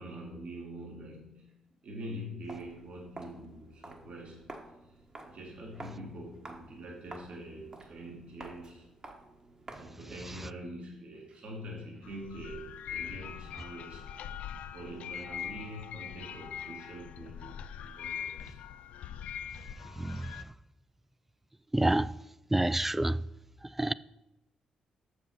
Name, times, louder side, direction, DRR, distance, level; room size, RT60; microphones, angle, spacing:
voice 1, 0.0-4.6 4.8-4.9 5.2-8.9 9.7-14.1 14.7-18.6, right 1 dB, 65° right, 2.2 m, -45 dB
Walk footsteps, 2.4-10.1, right 2 dB, 40° right, 1.4 m, -50 dB
sound 1, 12.0-20.4, left 9 dB, 80° left, 0.4 m, -42 dB
voice 2, 20.0-20.4 21.7-22.1 22.5-23.2 23.8-23.9, right 1 dB, 10° right, 0.3 m, -28 dB
7.8 x 6.8 x 5.5 m
cardioid pair, 70°, 2 cm